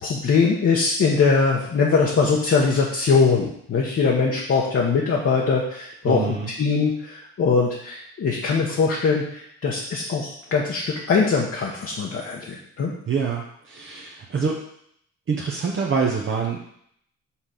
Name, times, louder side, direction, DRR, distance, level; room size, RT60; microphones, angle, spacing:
voice 1, 0.0-12.9, left 4 dB, 50° left, -3 dB, 1.1 m, -22 dB
voice 2, 6.1-6.5 13.1-14.6 15.3-16.6, right 5 dB, 40° right, -1 dB, 0.9 m, -25 dB
5.7 x 3.2 x 5.7 m, 0.69 s
cardioid pair, 90°, 30 cm